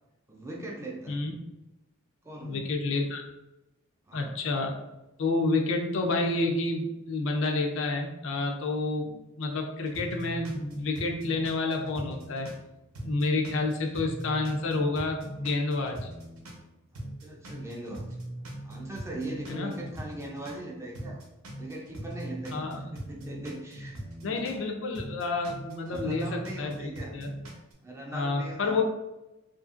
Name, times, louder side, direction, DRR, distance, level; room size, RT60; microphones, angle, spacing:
voice 1, 0.3-1.2 2.2-2.7 4.1-4.3 17.2-18.1 18.6-21.2 21.6-24.0 25.9-27.2 27.5-28.8, right 1 dB, 15° right, -2 dB, 0.3 m, -40 dB
voice 2, 2.4-3.2 4.1-4.8 5.2-12.5 13.0-16.1 19.5-19.7 22.5-22.8 24.2-27.3 28.1-28.8, left 3 dB, 60° left, 3 dB, 0.4 m, -29 dB
sound 1, 9.8-12.6 12.9-16.6 16.9-20.6 20.9-24.6 24.9-27.7, right 1 dB, 90° right, 0.7 m, -41 dB
2.7 x 2.5 x 2.4 m, 0.99 s
head